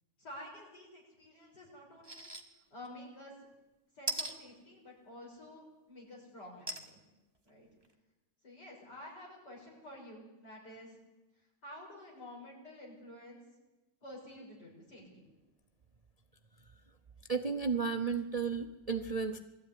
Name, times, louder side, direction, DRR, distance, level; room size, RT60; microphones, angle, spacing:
voice 1, 0.2-3.3 3.9-7.0 7.4-7.7 8.4-11.0 11.6-13.4 14.0-15.3, left 1 dB, 75° left, -2 dB, 6.9 m, -50 dB
sound 1, 2.0-2.4 2.8-2.9 4.1-4.3 6.7-6.9 7.5-7.6 7.8-7.9, right 2 dB, 15° right, 1.5 m, -37 dB
voice 2, 17.3-19.4, right 5 dB, 35° right, 8 dB, 0.6 m, -33 dB
20.5 x 14.0 x 9.9 m, 1.1 s
omnidirectional pair, 1.8 m